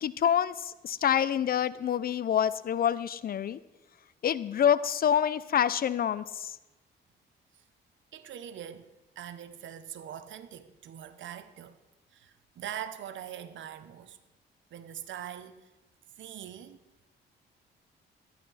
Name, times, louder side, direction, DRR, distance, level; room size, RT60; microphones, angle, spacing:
voice 1, 0.0-3.6 4.2-6.6, left 9 dB, 50° left, 0.5 m, -27 dB
voice 2, 8.1-8.9 9.2-11.8 12.1-14.2 14.7-15.7 16.2-16.8, right 10 dB, 70° right, 1.0 m, -42 dB
13.5 x 11.5 x 4.1 m
cardioid pair, 90°, 20 cm